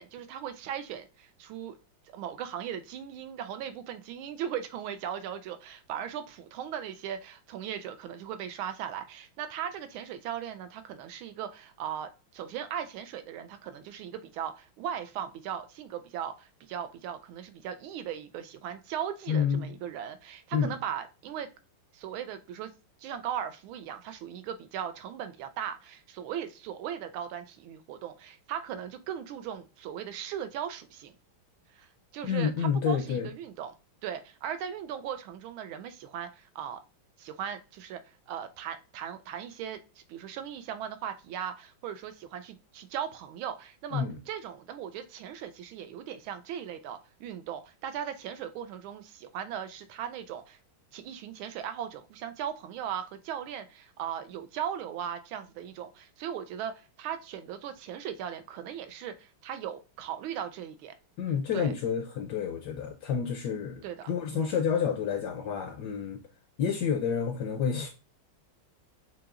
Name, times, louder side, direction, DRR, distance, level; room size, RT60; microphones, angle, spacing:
voice 1, 0.0-1.8 2.1-21.5 21.9-22.7 23.0-31.1 31.8-33.7 34.0-36.8 37.2-39.8 40.1-50.6 50.9-60.9 61.5-61.7 63.8-64.5, right 9 dB, 85° right, 1.4 m, -38 dB
voice 2, 19.3-19.7 20.5-20.7 32.2-33.3 43.9-44.2 61.2-66.2 66.6-67.9, left 7 dB, 75° left, 0.9 m, -29 dB
7.6 x 2.8 x 2.4 m
omnidirectional pair, 2.2 m